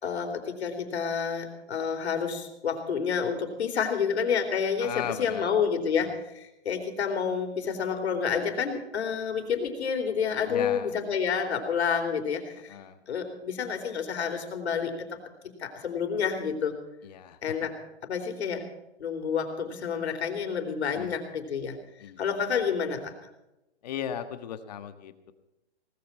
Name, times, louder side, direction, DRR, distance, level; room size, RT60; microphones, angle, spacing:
voice 1, 0.0-12.8 13.1-15.2 15.6-16.7 17.4-17.8 18.0-18.7 19.0-21.8 22.2-23.1, left 6 dB, 70° left, 5 dB, 4.0 m, -29 dB
voice 2, 4.8-5.5 6.0-6.1 10.5-10.9 12.7-13.0 17.0-17.4 20.8-21.2 22.0-22.2 23.8-25.3, left 9 dB, 35° left, 9 dB, 1.4 m, -37 dB
18.5 x 14.5 x 4.5 m, 0.93 s
hypercardioid pair, 170°, 34 cm